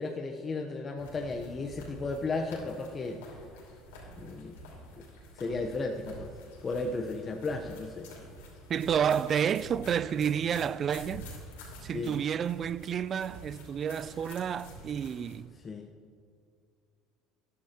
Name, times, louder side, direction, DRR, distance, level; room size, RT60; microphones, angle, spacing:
voice 1, 0.0-3.4 4.2-4.6 5.4-6.3 6.6-8.1 11.9-12.2 15.6-15.9, left 3 dB, 30° left, 0.8 m, -34 dB
sound 1, 1.0-15.4, equal, 90° left, 2.9 m, -48 dB
voice 2, 8.7-11.3 11.8-15.5, right 8 dB, 45° right, 0.3 m, -30 dB
13.5 x 11.5 x 2.9 m
supercardioid pair, 85°, 0 cm